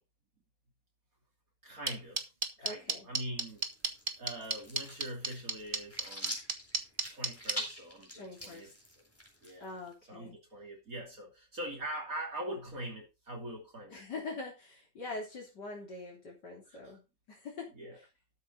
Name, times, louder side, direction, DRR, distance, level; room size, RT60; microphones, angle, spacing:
voice 1, 1.6-2.3 2.6-3.6 4.2-6.4 7.1-8.7 9.4-9.7 10.1-14.0 16.7-17.0 17.7-18.0, right 1 dB, 50° right, 0 dB, 3.3 m, -43 dB
sound 1, 1.9-7.5, right 4 dB, 30° right, 1.5 m, -31 dB
voice 2, 2.6-3.1 8.1-8.7 9.6-10.4 13.9-17.0 17.3-18.1, left 3 dB, 70° left, -2 dB, 3.9 m, -44 dB
sound 2, 3.5-9.9, equal, 5° left, 4.0 m, -45 dB
13.0 x 8.1 x 4.0 m, 0.27 s
omnidirectional pair, 1.9 m